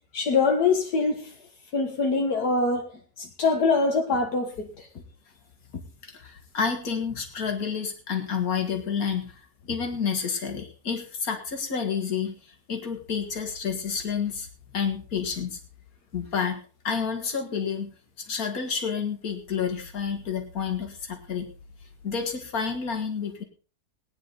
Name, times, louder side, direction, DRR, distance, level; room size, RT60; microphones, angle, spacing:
voice 1, 0.1-1.3 1.7-2.9 3.2-4.7, left 4 dB, 85° left, 2 dB, 2.1 m, -23 dB
voice 2, 6.0-14.5 14.7-15.6 16.1-17.9 18.3-21.5 22.0-23.4, left 6 dB, 70° left, 5 dB, 2.4 m, -30 dB
19.0 x 9.9 x 4.1 m, 0.36 s
omnidirectional pair, 1.6 m